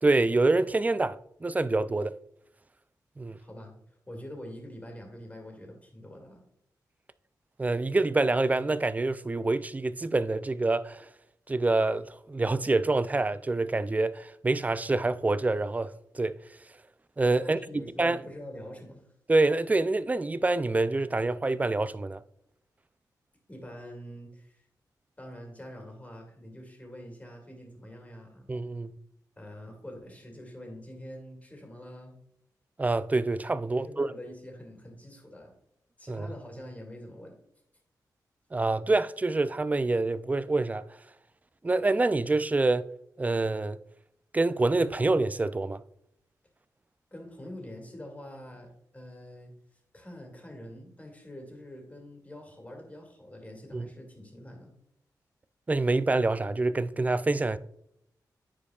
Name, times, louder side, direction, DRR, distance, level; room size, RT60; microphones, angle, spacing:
voice 1, 0.0-2.1 3.2-3.4 7.6-11.1 11.5-16.4 17.2-17.6 18.0-18.2 19.3-22.2 28.5-28.9 32.8-34.1 36.1-36.3 38.5-40.8 41.6-42.8 43.2-43.8 44.3-45.8 53.7-53.9 55.7-57.6, right 2 dB, 20° right, 0.3 m, -26 dB
voice 2, 3.4-3.7 4.1-6.4 17.4-19.0 23.5-24.6 25.2-28.4 29.4-32.2 33.8-35.5 36.0-37.4 47.1-49.5 49.9-54.7, equal, 20° left, 2.1 m, -45 dB
9.7 x 4.6 x 2.3 m
cardioid pair, 65°, 7 cm